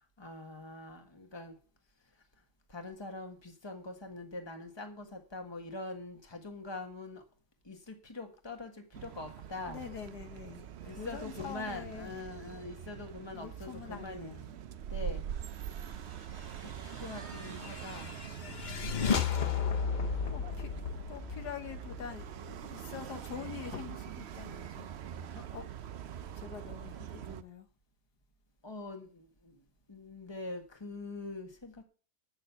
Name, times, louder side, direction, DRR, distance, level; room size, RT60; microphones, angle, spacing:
voice 1, 0.2-1.6 2.7-7.2 7.6-9.8 10.8-14.6 14.9-15.2 16.6-18.2 18.5-19.1 19.4-20.1 21.0-21.3 25.3-25.5 28.6-29.6 29.9-31.8, left 2 dB, 15° left, 1.6 m, -44 dB
sound 1, 8.9-27.4, right 9 dB, 65° right, 0.6 m, -44 dB
voice 2, 9.7-12.1 13.3-14.4 20.3-20.7 21.1-24.9 25.5-25.6 26.4-27.7, left 8 dB, 75° left, 1.7 m, -45 dB
sound 2, 17.0-22.6, left 6 dB, 50° left, 0.6 m, -34 dB
8.3 x 6.5 x 8.3 m
omnidirectional pair, 1.7 m